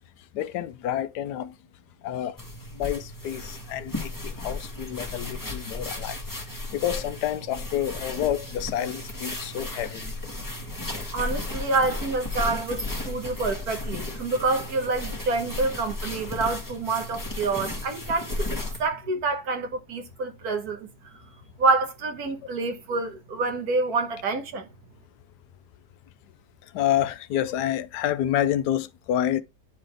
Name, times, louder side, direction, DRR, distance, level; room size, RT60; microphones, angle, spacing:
voice 1, 0.3-1.5 2.0-2.3 2.8-6.2 6.7-10.1 26.7-29.4, left 11 dB, 80° left, 1.2 m, -28 dB
sound 1, 2.4-18.9, left 2 dB, 10° left, 1.5 m, -34 dB
voice 2, 11.1-20.9 21.6-24.7, right 3 dB, 70° right, 1.6 m, -27 dB
9.9 x 3.8 x 3.3 m
omnidirectional pair, 1.7 m